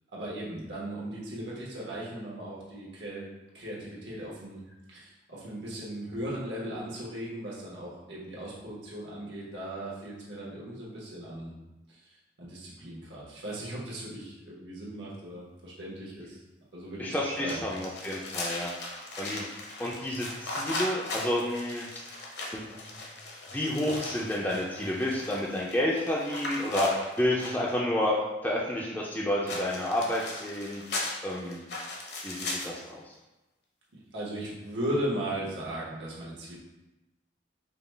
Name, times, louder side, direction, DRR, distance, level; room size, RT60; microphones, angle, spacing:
voice 1, 0.1-3.3 3.5-4.6 4.9-11.5 11.9-16.4 16.7-17.7 34.1-36.6, right 1 dB, 80° right, -6 dB, 1.3 m, -37 dB
voice 2, 17.0-18.7 19.2-19.4 19.8-21.9 22.5-22.7 23.5-26.9 27.2-30.8 31.2-31.6 32.2-33.1, left 1 dB, 10° left, -5 dB, 0.3 m, -30 dB
sound 1, 17.5-27.7 29.5-32.9, left 2 dB, 65° left, 0.8 m, -38 dB
5.0 x 2.3 x 3.2 m, 1.0 s
head